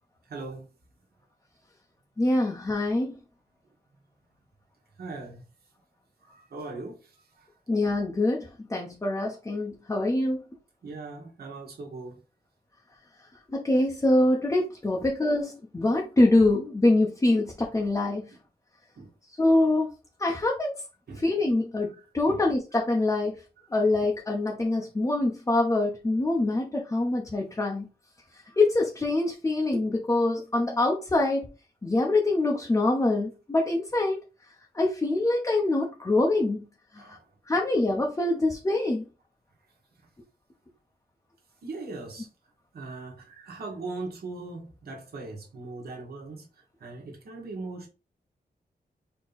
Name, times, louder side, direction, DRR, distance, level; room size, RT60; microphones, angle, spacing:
voice 1, 0.3-0.7 2.2-2.5 5.0-5.4 6.2-7.5 10.8-12.2 18.9-19.1 21.1-21.2 21.9-22.5 23.6-23.7 37.0-37.3 41.6-42.3 42.7-46.5 46.8-47.9, right 3 dB, 70° right, 1.4 m, -40 dB
voice 2, 2.2-3.1 7.7-10.4 13.5-18.3 19.4-19.9 20.2-20.8 21.2-23.4 23.7-27.9 28.6-31.5 31.8-34.2 34.7-36.7 37.0-37.1 37.5-39.0, left 2 dB, 20° left, 0.7 m, -24 dB
4.4 x 2.9 x 4.0 m
wide cardioid pair, 160°, 17 cm